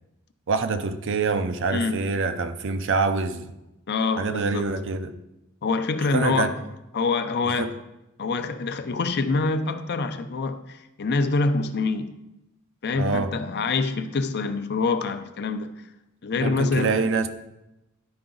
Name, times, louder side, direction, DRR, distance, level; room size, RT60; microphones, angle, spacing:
voice 1, 0.5-3.5 4.2-5.1 6.1-6.5 7.4-7.7 12.9-13.3 16.4-17.3, right 4 dB, 60° right, 0.6 m, -25 dB
voice 2, 3.9-4.7 5.6-6.5 6.9-7.7 8.2-12.1 12.8-15.7 16.2-16.9, left 3 dB, 50° left, 0.6 m, -25 dB
11.5 x 4.8 x 3.9 m
head